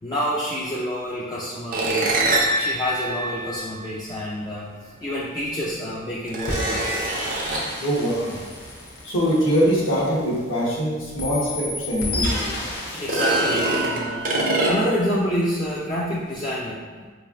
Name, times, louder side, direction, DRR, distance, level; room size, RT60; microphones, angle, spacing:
voice 1, 0.0-2.3 2.6-7.0 12.9-16.8, equal, 20° left, -6 dB, 0.3 m, -28 dB
sound 1, 1.7-4.2 5.4-5.5 6.3-7.8 11.1-11.2 11.6-11.7 12.9-15.1, right 2 dB, 40° right, 0.5 m, -24 dB
sound 2, 6.5-10.8 11.2-13.9, left 1 dB, 50° left, 0.8 m, -31 dB
voice 2, 7.8-8.4 9.0-12.5, equal, 75° left, -6 dB, 1.0 m, -23 dB
4.5 x 3.1 x 2.4 m, 1.4 s
head